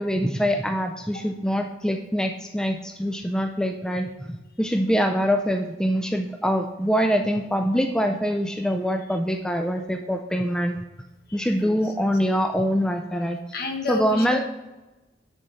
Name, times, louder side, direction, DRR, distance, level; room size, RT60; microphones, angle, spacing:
voice 1, 0.0-10.8 11.3-13.4 13.9-14.4, equal, 5° left, 4 dB, 0.3 m, -24 dB
voice 2, 13.5-14.4, left 4 dB, 55° left, 4 dB, 1.1 m, -31 dB
7.7 x 6.6 x 4.1 m, 1.1 s
head